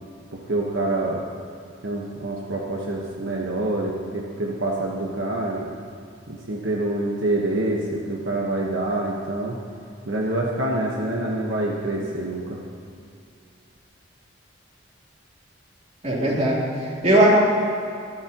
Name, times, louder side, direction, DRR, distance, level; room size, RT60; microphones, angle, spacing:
voice 1, 0.3-1.3 1.8-5.7 6.3-9.6 10.1-12.6, right 2 dB, 70° right, -2 dB, 1.3 m, -26 dB
voice 2, 16.0-17.3, right 1 dB, 35° right, -5 dB, 3.3 m, -19 dB
24.5 x 12.0 x 3.0 m, 2.5 s
head